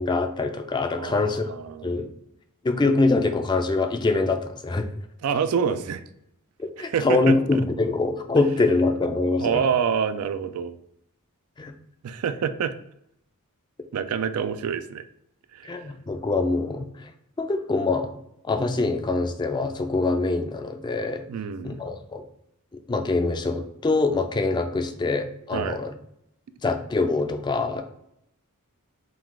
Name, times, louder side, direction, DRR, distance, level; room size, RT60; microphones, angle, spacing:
voice 1, 0.0-1.4 1.8-2.1 2.6-4.9 6.6-9.6 11.6-11.7 15.6-17.1 17.4-18.2 18.4-21.2 21.6-22.2 22.7-25.9 26.6-27.8, left 3 dB, 20° left, 7 dB, 0.3 m, -24 dB
voice 2, 1.0-2.1 5.2-6.0 6.8-7.4 9.4-10.8 12.0-12.7 13.9-15.0 15.5-15.9 21.3-21.8 25.5-25.8, right 7 dB, 80° right, 11 dB, 0.4 m, -27 dB
3.8 x 2.3 x 4.6 m, 0.77 s
head